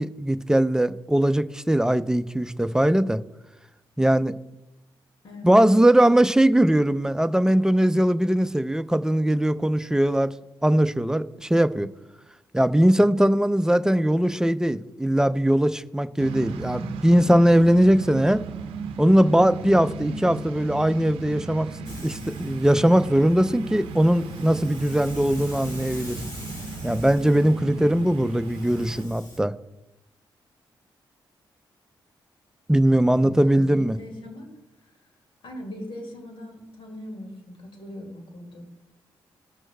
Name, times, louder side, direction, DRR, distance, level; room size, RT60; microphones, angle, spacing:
voice 1, 0.0-3.2 4.0-4.3 5.4-10.3 10.6-11.9 12.5-18.4 19.0-26.2 26.8-29.5 32.7-34.0, right 1 dB, 5° right, 12 dB, 0.5 m, -20 dB
voice 2, 5.2-5.6 33.2-34.5 34.8-34.9 35.4-38.6, left 1 dB, 65° left, 2 dB, 2.2 m, -39 dB
sound 1, 16.2-29.0, right 4 dB, 90° right, 0.6 m, -36 dB
Hiss, 21.9-29.4, left 1 dB, 40° left, 2.4 m, -44 dB
18.0 x 6.1 x 2.3 m, 0.92 s
supercardioid pair, 45°, 9 cm